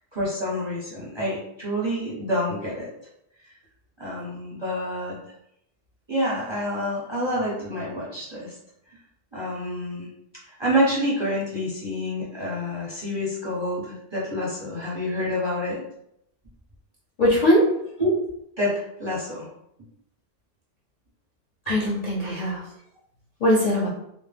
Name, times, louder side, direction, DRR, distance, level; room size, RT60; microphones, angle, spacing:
voice 1, 0.1-2.9 4.0-5.2 6.1-8.5 9.3-10.1 10.4-15.8 18.0-18.1 18.6-19.5 23.6-23.9, equal, 25° right, -7 dB, 0.7 m, -28 dB
voice 2, 17.2-17.6 21.7-22.6 23.4-23.9, equal, 45° left, -7 dB, 0.5 m, -20 dB
2.1 x 2.1 x 3.3 m, 0.77 s
omnidirectional pair, 1.2 m